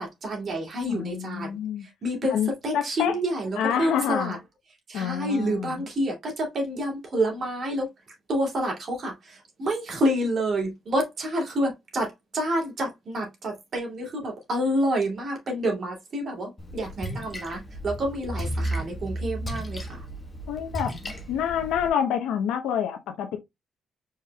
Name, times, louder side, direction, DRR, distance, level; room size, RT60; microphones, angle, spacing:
voice 1, 0.0-1.6 2.0-4.4 4.9-7.9 8.3-20.0, equal, 50° right, 2.6 m, -28 dB
voice 2, 0.9-1.9 2.3-3.1 3.6-4.4 4.9-5.9 20.5-20.9 21.3-23.4, left 8 dB, 85° left, 0.7 m, -27 dB
Splash splatter, 16.6-21.9, right 1 dB, 20° left, 1.3 m, -34 dB
4.9 x 4.5 x 2.2 m
cardioid pair, 90°, 0 cm